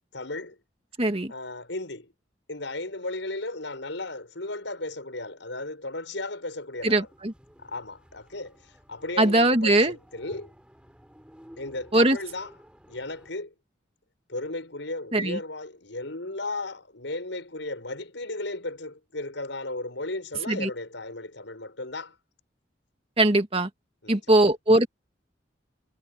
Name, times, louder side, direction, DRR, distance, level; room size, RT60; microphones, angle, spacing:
voice 1, 0.1-0.6 1.3-2.1 2.5-7.1 7.6-10.5 11.6-12.5 12.9-13.5 14.3-22.1 24.0-24.5, left 2 dB, 80° left, 6.2 m, -35 dB
voice 2, 1.0-1.3 6.8-7.3 9.2-10.0 11.9-12.2 15.1-15.4 20.5-20.7 23.2-23.7 24.1-24.9, right 1 dB, 30° right, 2.1 m, -21 dB
sound 1, 6.8-13.3, equal, 5° right, 6.7 m, -53 dB
head